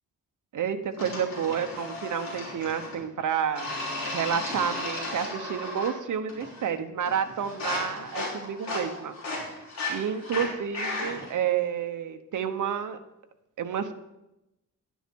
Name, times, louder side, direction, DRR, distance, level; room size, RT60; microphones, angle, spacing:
voice 1, 0.5-3.7 4.1-9.5 9.9-13.0 13.6-13.9, right 8 dB, 70° right, 7 dB, 1.1 m, -30 dB
sound 1, 1.0-3.0 3.6-6.0 6.3-6.7 7.1-11.3, left 2 dB, 55° left, 4.6 m, -35 dB
11.5 x 9.8 x 5.4 m, 0.92 s
wide cardioid pair, 150°, 32 cm